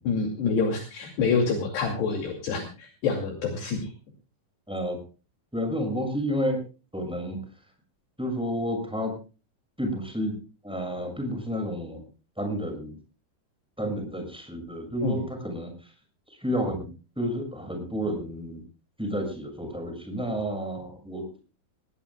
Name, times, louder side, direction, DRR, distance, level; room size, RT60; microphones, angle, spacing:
voice 1, 0.0-3.9 15.0-15.2, left 5 dB, 65° left, 3 dB, 4.4 m, -27 dB
voice 2, 4.7-5.0 5.5-6.6 6.9-7.4 8.2-9.1 9.8-10.3 10.6-12.0 12.4-12.9 13.8-15.7 16.4-16.9 17.2-18.6 19.0-21.2, equal, ahead, 4 dB, 6.4 m, -30 dB
20.0 x 20.0 x 2.3 m, 0.34 s
omnidirectional pair, 5.5 m